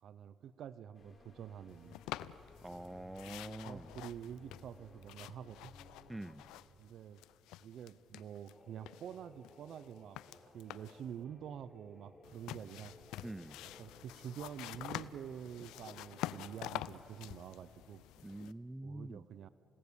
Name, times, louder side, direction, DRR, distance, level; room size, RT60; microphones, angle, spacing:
voice 1, 0.0-2.0 3.3-5.7 6.8-7.2 7.6-10.2 10.5-12.9 13.8-18.0 18.8-19.5, right 9 dB, 65° right, 15 dB, 0.6 m, -48 dB
sound 1, 0.9-6.5, left 3 dB, 35° left, 4.6 m, -58 dB
sound 2, 1.9-2.9 3.1-6.9 7.1-8.5 8.9-11.1 12.2-18.5, left 14 dB, 90° left, 0.5 m, -47 dB
voice 2, 2.6-3.9 6.1-6.4 13.2-13.6 18.2-19.3, right 1 dB, 10° right, 19 dB, 0.5 m, -45 dB
sound 3, 8.5-16.2, left 1 dB, 10° left, 3.9 m, -61 dB
29.0 x 17.5 x 7.0 m, 2.9 s
cardioid pair, 85°, 0 cm